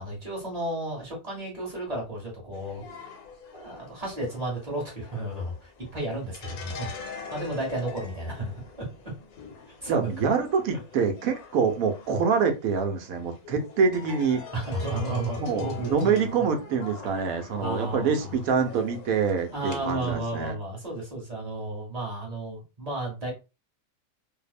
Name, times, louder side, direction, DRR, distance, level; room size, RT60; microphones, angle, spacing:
voice 1, 0.0-3.0 3.5-8.9 9.8-10.1 14.5-16.3 17.0-18.4 19.5-23.3, right 1 dB, 30° right, 1.1 m, -33 dB
sound 1, 2.5-19.9, left 4 dB, 80° left, 1.2 m, -44 dB
voice 2, 9.9-14.4 15.4-20.5, right 5 dB, 75° right, 1.0 m, -25 dB
2.7 x 2.0 x 2.4 m
omnidirectional pair, 1.6 m